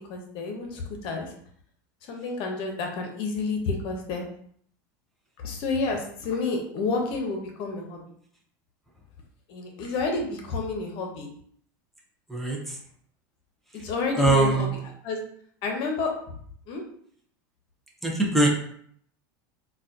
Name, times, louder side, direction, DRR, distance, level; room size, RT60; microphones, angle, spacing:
voice 1, 0.1-1.3 2.1-4.3 5.4-8.0 9.5-11.3 13.8-14.7 15.0-15.2 15.6-16.1 16.7-16.8, left 3 dB, 55° left, 2 dB, 0.8 m, -30 dB
voice 2, 12.3-12.8 14.2-14.7 18.0-18.5, right 2 dB, ahead, -3 dB, 0.6 m, -22 dB
3.9 x 2.3 x 2.6 m, 0.62 s
supercardioid pair, 115°, 11 cm